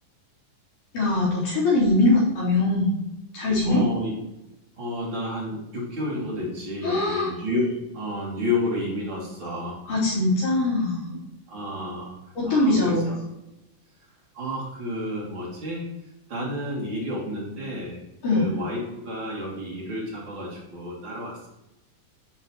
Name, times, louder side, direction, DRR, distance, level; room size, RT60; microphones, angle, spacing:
voice 1, 0.9-2.9 3.3-3.8 6.8-7.3 9.9-11.2 12.4-13.1 18.2-18.5, left 2 dB, 65° left, -8 dB, 5.4 m, -22 dB
voice 2, 3.6-4.1 4.8-9.8 11.1-11.2 11.5-12.1 12.4-13.2 14.3-15.9 16.3-18.0 18.3-21.5, left 1 dB, 40° right, -4 dB, 3.4 m, -30 dB
11.5 x 8.6 x 3.1 m, 0.92 s
omnidirectional pair, 3.7 m